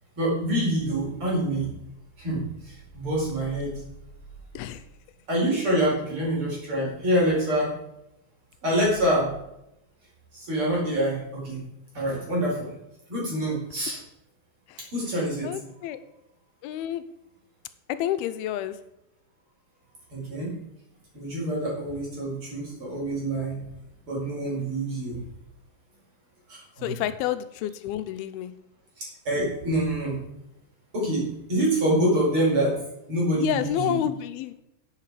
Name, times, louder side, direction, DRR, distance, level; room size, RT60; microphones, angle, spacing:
voice 1, 0.2-1.7 2.2-3.7 5.3-7.7 8.6-9.3 10.3-11.6 11.9-12.7 13.1-14.0 14.9-15.5 20.1-20.5 21.1-23.6 24.1-25.2 26.5-26.9 29.0-30.2 30.9-32.8 33.1-34.0, right 1 dB, 35° right, -4 dB, 5.5 m, -26 dB
voice 2, 15.4-16.0 16.6-17.0 17.9-18.8 26.8-28.5 33.4-34.5, left 11 dB, 90° left, 11 dB, 2.6 m, -29 dB
11.5 x 8.4 x 4.9 m, 0.84 s
omnidirectional pair, 4.4 m